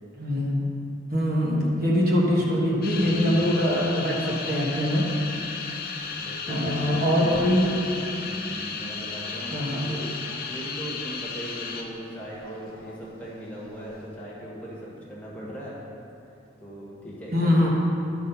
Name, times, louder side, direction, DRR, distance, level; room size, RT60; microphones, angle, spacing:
voice 1, 0.2-0.7 1.1-5.0 6.5-7.6 9.5-9.9 17.3-17.7, left 1 dB, 50° right, -4 dB, 1.3 m, -23 dB
voice 2, 1.5-1.9 6.1-7.9 8.2-15.8 16.6-17.7, right 1 dB, 5° left, -7 dB, 1.5 m, -39 dB
sound 1, 2.8-12.0 12.4-13.0 13.7-14.0, left 5 dB, 50° left, 0.6 m, -35 dB
11.5 x 4.1 x 5.5 m, 2.7 s
head